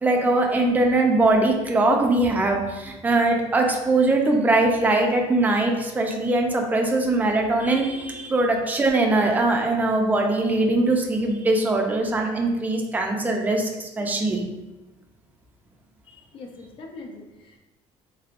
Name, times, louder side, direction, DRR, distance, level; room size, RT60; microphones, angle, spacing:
voice 1, 0.0-14.5, right 2 dB, 15° right, 2 dB, 0.4 m, -21 dB
voice 2, 16.1-17.6, left 3 dB, 45° left, 2 dB, 0.6 m, -42 dB
3.5 x 3.3 x 2.4 m, 1.1 s
cardioid pair, 150°, 12 cm